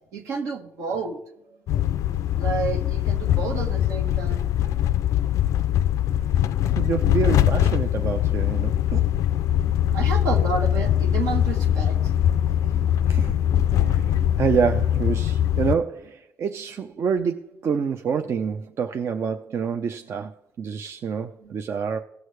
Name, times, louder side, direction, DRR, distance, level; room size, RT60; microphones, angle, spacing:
voice 1, 0.1-1.2 2.4-4.4 9.9-12.1 21.4-21.6, right 5 dB, 80° right, 1.4 m, -30 dB
sound 1, 1.7-15.7, left 11 dB, 75° left, 0.3 m, -22 dB
voice 2, 6.8-9.1 13.1-13.4 13.7-22.0, right 6 dB, 55° right, 0.5 m, -27 dB
16.5 x 6.4 x 3.2 m
supercardioid pair, 70°, 5 cm